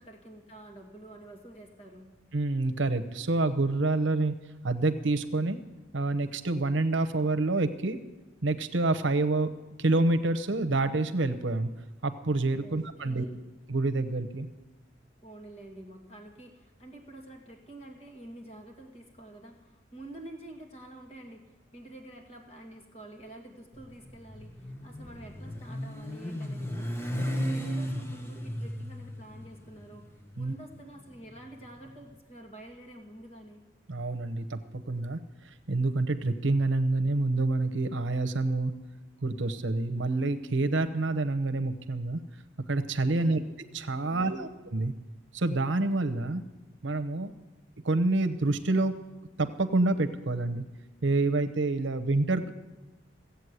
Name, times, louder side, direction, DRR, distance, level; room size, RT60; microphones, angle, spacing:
voice 1, 0.0-2.1 12.6-13.4 15.2-33.6 43.2-43.4 44.0-44.5, right 1 dB, 35° left, 1 dB, 2.2 m, -48 dB
voice 2, 2.3-4.3 4.6-5.6 5.9-8.0 8.4-9.5 9.8-11.7 12.0-13.2 13.7-14.5 27.1-27.3 30.4-30.5 33.9-35.2 35.7-38.7 39.2-42.2 42.7-43.4 43.7-44.9 45.3-46.4 46.8-47.3 47.8-48.9 49.4-50.6 51.0-52.5, right 2 dB, 80° right, 11 dB, 0.9 m, -27 dB
Motorcycle, 23.7-31.9, equal, 15° left, 1.0 m, -36 dB
15.5 x 8.2 x 8.1 m, 1.1 s
head